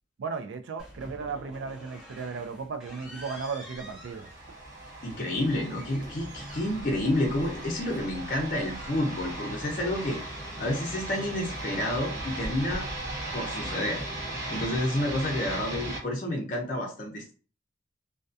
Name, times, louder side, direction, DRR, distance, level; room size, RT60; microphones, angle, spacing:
voice 1, 0.2-4.3, right 5 dB, 75° right, 0.3 m, -35 dB
sound 1, 0.8-14.8, equal, 5° right, 0.5 m, -47 dB
sound 2, 3.4-16.0, right 1 dB, 45° right, 1.1 m, -38 dB
voice 2, 5.0-10.2 10.6-12.8 13.3-14.0 14.5-17.3, left 1 dB, 40° left, 0.5 m, -29 dB
2.3 x 2.2 x 2.5 m
head